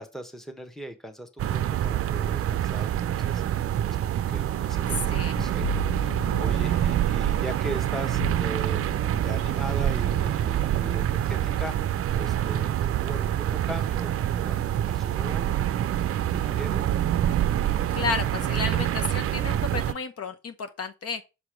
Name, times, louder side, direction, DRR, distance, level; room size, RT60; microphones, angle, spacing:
voice 1, 0.0-3.4 3.8-8.8 9.2-16.1 16.4-16.9, right 1 dB, ahead, 1.0 m, -40 dB
sound 1, 1.4-19.9, right 11 dB, 50° right, 0.5 m, -26 dB
sound 2, 5.4-7.5 8.2-9.7 10.0-10.3, right 1 dB, 85° left, 2.3 m, -34 dB
voice 2, 17.9-21.2, left 5 dB, 50° left, 0.9 m, -32 dB
6.7 x 2.9 x 4.9 m
cardioid pair, 90°, 30 cm